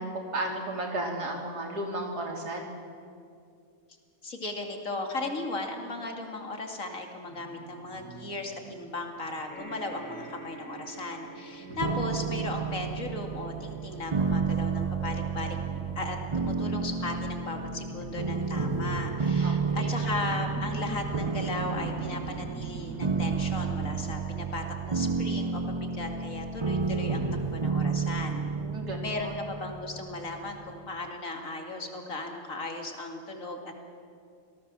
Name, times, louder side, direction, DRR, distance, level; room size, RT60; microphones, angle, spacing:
voice 1, 0.0-2.7 11.6-11.8 19.4-19.9 28.6-29.4, right 1 dB, 85° right, 1 dB, 3.7 m, -34 dB
voice 2, 4.2-15.6 16.0-27.3 27.5-28.4 29.0-33.9, left 2 dB, 55° left, 3 dB, 2.8 m, -36 dB
sound 1, 7.3-14.2 14.6-24.1, right 3 dB, 70° right, 2.5 m, -45 dB
sound 2, 9.5-24.0 24.8-24.9 25.1-25.2, right 3 dB, 5° left, 5.7 m, -51 dB
sound 3, 11.8-30.8, right 5 dB, 35° right, 0.5 m, -31 dB
26.5 x 18.5 x 7.6 m, 2.4 s
omnidirectional pair, 1.7 m